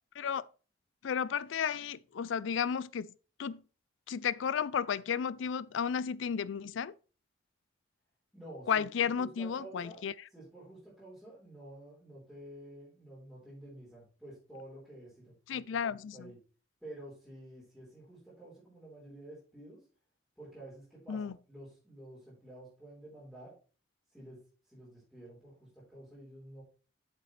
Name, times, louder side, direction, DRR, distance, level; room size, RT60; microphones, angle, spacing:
voice 1, 1.0-3.1 3.4-3.6 4.1-6.9 8.7-10.1 15.5-16.3 21.1-21.4, left 7 dB, 75° left, 0.4 m, -33 dB
voice 2, 8.3-10.0 10.3-15.6 16.1-16.4 16.8-19.8 20.4-23.5 24.1-24.4 24.7-26.6, right 1 dB, ahead, 4.2 m, -50 dB
8.3 x 7.6 x 3.2 m
head